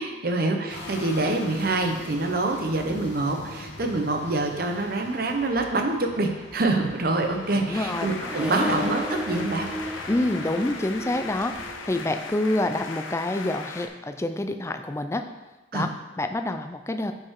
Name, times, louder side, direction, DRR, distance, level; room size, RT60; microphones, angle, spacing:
voice 1, 0.0-9.7 15.7-15.9, right 2 dB, 50° right, 4 dB, 0.8 m, -26 dB
sound 1, 0.7-11.7, left 2 dB, 60° left, 1.3 m, -42 dB
Accelerating revving vroom, 7.1-13.5, equal, 5° right, 0.8 m, -36 dB
voice 2, 7.5-8.1 8.4-8.7 10.1-15.3 15.7-17.1, left 1 dB, 15° left, 7 dB, 0.4 m, -27 dB
sound 2, 7.7-13.9, left 4 dB, 90° left, 0.8 m, -38 dB
9.2 x 5.5 x 3.7 m, 1.1 s
head